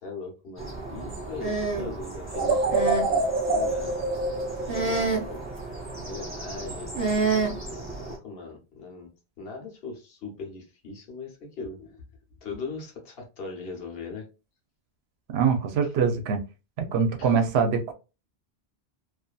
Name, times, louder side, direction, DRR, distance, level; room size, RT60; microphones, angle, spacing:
voice 1, 0.0-3.9 4.4-5.4 6.0-7.0 7.7-9.1 9.4-12.0 12.4-14.2 15.8-15.9 17.2-17.4, left 4 dB, 65° left, 1.0 m, -40 dB
sound 1, 0.6-8.2, right 4 dB, 10° right, 1.1 m, -30 dB
sound 2, 2.3-5.5, right 2 dB, 45° right, 0.8 m, -26 dB
voice 2, 15.3-16.4 16.8-17.9, right 6 dB, 75° right, 0.8 m, -23 dB
2.6 x 2.4 x 2.2 m
omnidirectional pair, 1.1 m